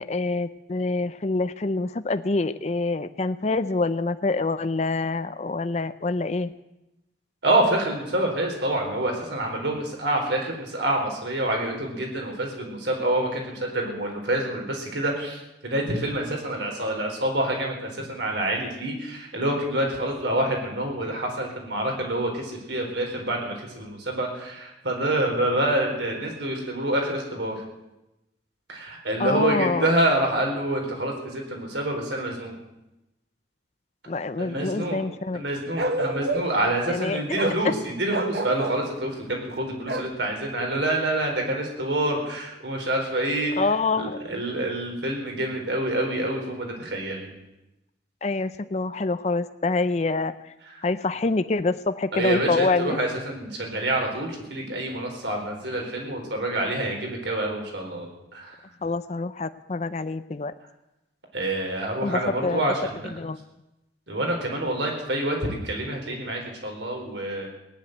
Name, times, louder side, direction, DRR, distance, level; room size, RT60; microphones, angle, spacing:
voice 1, 0.0-6.5 29.2-29.9 34.1-35.4 36.9-37.4 43.6-44.2 48.2-50.3 50.8-53.0 58.8-60.5 62.0-62.6 63.2-63.4, left 3 dB, 40° left, 12 dB, 0.5 m, -26 dB
voice 2, 7.4-27.6 28.7-32.5 34.4-35.0 35.3-43.7 43.9-47.3 50.7-50.8 52.1-58.6 61.3-63.1 64.1-67.5, right 1 dB, 80° right, 1 dB, 4.3 m, -27 dB
Bark, 35.8-36.7 37.3-37.6 38.1-38.8 39.9-40.1, right 2 dB, 60° right, 1.5 m, -28 dB
17.5 x 10.5 x 8.0 m, 0.94 s
head